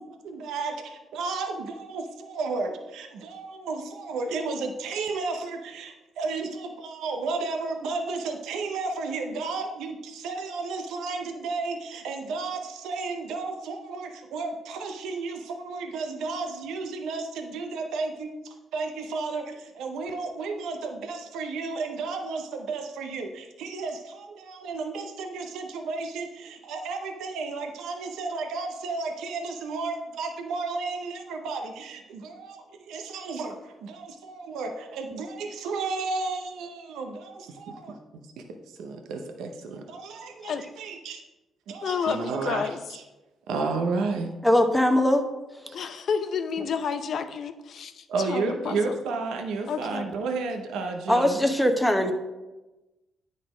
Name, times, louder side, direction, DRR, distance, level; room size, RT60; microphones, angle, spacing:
voice 1, 0.2-18.3 18.7-37.9 38.8-41.2 41.7-43.0 43.5-44.3 45.7-45.8 48.1-51.4, right 4 dB, 85° right, 4 dB, 0.7 m, -32 dB
voice 2, 41.8-42.8 45.7-48.9 49.7-50.1, left 6 dB, 60° left, 9 dB, 0.6 m, -30 dB
voice 3, 44.4-45.2 51.1-52.1, left 1 dB, 5° left, 5 dB, 0.9 m, -21 dB
9.1 x 4.1 x 4.9 m, 1.1 s
cardioid pair, 90°, 0 cm